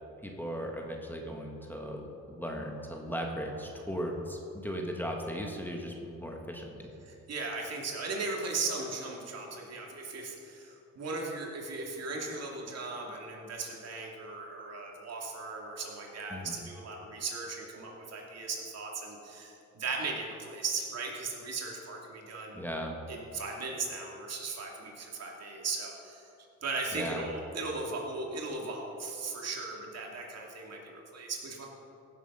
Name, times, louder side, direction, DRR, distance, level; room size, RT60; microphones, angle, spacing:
voice 1, 0.2-6.9 16.3-16.6 22.5-23.0 26.9-27.2, equal, 5° left, 1 dB, 1.5 m, -37 dB
voice 2, 7.0-22.6 23.1-26.3 26.6-31.7, right 3 dB, 55° right, -1 dB, 2.6 m, -37 dB
16.0 x 7.7 x 5.5 m, 2.8 s
cardioid pair, 90°, 30 cm